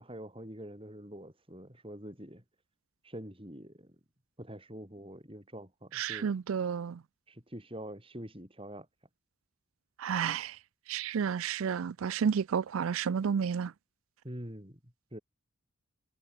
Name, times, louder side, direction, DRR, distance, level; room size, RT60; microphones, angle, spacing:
voice 1, 0.0-2.4 3.0-4.0 4.4-6.3 7.3-8.9 14.2-14.8 15.1-15.2, equal, 25° right, 5.9 m, -45 dB
voice 2, 5.9-7.0 10.0-10.6 10.9-13.7, right 7 dB, 80° right, 0.4 m, -31 dB
head